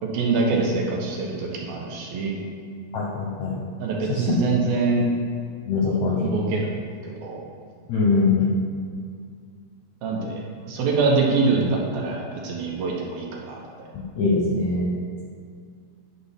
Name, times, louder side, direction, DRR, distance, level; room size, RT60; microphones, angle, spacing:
voice 1, 0.0-2.4 3.8-5.0 5.8-6.7 7.0-7.4 10.0-10.4 10.7-13.6, right 4 dB, 75° right, -2 dB, 2.9 m, -24 dB
voice 2, 2.9-3.6 4.1-4.3 5.7-6.3 7.9-8.5 13.9-14.9, left 4 dB, 70° left, -5 dB, 1.8 m, -22 dB
10.5 x 4.1 x 5.7 m, 2.2 s
omnidirectional pair, 4.5 m